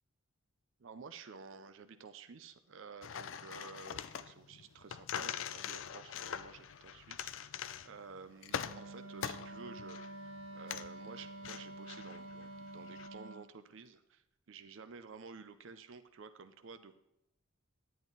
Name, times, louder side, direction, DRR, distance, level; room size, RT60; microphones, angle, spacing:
voice 1, 0.8-7.3 7.8-17.0, right 5 dB, 60° right, 10 dB, 0.5 m, -52 dB
sound 1, 3.0-13.1, left 8 dB, 60° left, 0.4 m, -43 dB
Wind instrument woodwind instrument, 8.6-13.5, right 1 dB, 85° right, 1.0 m, -48 dB
10.0 x 9.0 x 3.9 m, 0.86 s
head